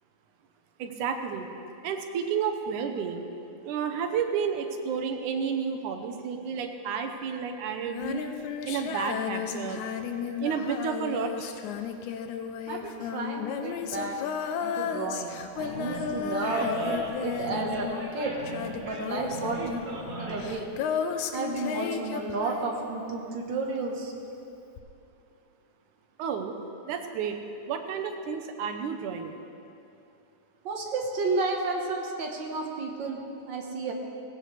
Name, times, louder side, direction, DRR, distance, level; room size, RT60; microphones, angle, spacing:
voice 1, 0.8-1.5 1.8-3.3 3.6-8.3 8.7-9.9 10.4-11.3 26.2-26.6 26.9-29.3, right 6 dB, 75° right, 5 dB, 2.3 m, -31 dB
Female singing, 7.9-23.2 24.8-24.9, left 7 dB, 75° left, 2.1 m, -34 dB
voice 2, 12.7-14.1 14.6-16.7 17.2-18.4 18.7-19.8 20.2-20.7 21.3-24.1 30.6-33.2 33.5-33.9, right 3 dB, 50° right, 0 dB, 1.6 m, -32 dB
Animal, 15.5-20.6, right 1 dB, 25° right, 1.6 m, -37 dB
18.5 x 16.0 x 3.3 m, 2.7 s
omnidirectional pair, 3.6 m